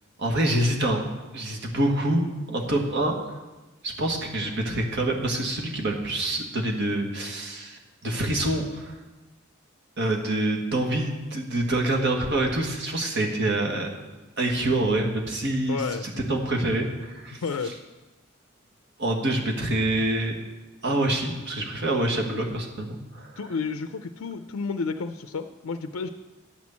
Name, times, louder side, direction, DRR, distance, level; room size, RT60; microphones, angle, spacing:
voice 1, 0.2-1.1 1.3-3.1 3.8-8.9 10.0-13.9 14.4-17.7 19.0-20.4 20.8-23.4, right 1 dB, 55° right, 1 dB, 1.6 m, -26 dB
voice 2, 15.7-16.1 17.4-17.7 23.4-26.1, left 5 dB, 90° left, 8 dB, 0.5 m, -31 dB
10.0 x 6.2 x 7.1 m, 1.1 s
head